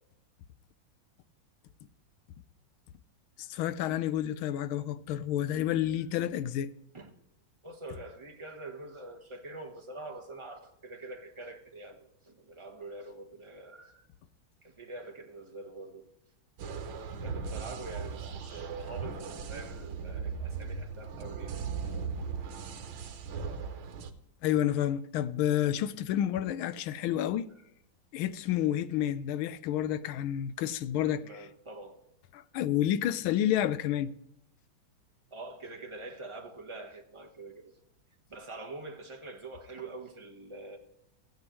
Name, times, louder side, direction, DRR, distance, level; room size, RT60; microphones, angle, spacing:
voice 1, 3.5-6.7 24.4-27.5 28.1-31.5 32.3-34.1, left 11 dB, 85° left, 1.5 m, -30 dB
voice 2, 7.6-14.1 14.6-16.1 17.2-21.5 21.9-22.1 31.0-32.0 35.3-37.7 38.3-40.8, right 2 dB, 20° right, 0.9 m, -45 dB
sound 1, 16.6-24.1, right 5 dB, 80° right, 1.8 m, -38 dB
15.5 x 9.3 x 3.1 m
omnidirectional pair, 2.2 m